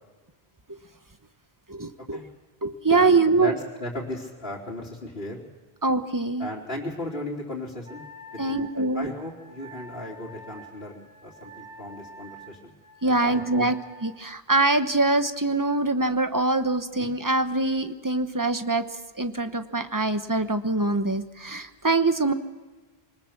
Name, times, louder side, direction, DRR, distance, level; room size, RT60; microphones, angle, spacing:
voice 1, 1.7-2.2 2.6-3.6 5.8-6.5 8.4-9.1 13.0-13.7 14.0-18.9 19.1-22.3, right 3 dB, 20° right, 9 dB, 1.0 m, -24 dB
voice 2, 2.9-3.5 3.8-5.4 6.4-8.0 8.3-12.7 13.1-13.7, left 1 dB, 70° left, -7 dB, 3.7 m, -36 dB
Wind instrument woodwind instrument, 7.8-14.2, right 1 dB, 20° left, 2.0 m, -47 dB
25.0 x 20.0 x 6.0 m, 1.3 s
omnidirectional pair, 1.0 m